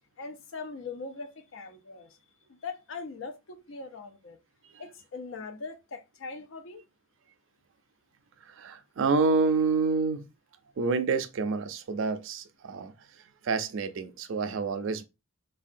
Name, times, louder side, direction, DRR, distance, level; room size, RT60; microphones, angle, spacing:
voice 1, 0.2-2.2 2.5-4.4 4.8-6.8, left 4 dB, 65° left, 0.5 m, -41 dB
voice 2, 8.6-10.2 10.8-12.9 13.4-15.0, right 4 dB, 60° right, 0.4 m, -28 dB
3.4 x 2.2 x 2.5 m
head